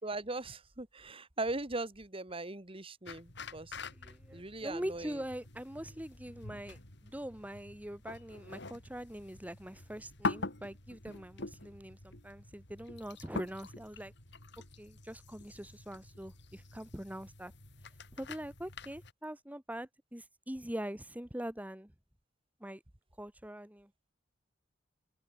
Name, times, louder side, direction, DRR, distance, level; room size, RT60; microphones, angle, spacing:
voice 1, 0.0-3.8 4.3-5.2, right 2 dB, 30° right, 2.2 m, -39 dB
sound 1, 3.1-19.1, left 3 dB, 60° left, 4.7 m, -45 dB
voice 2, 3.9-14.1 14.8-17.5 18.1-21.9 22.6-22.8 23.2-23.9, equal, 10° right, 1.9 m, -43 dB
head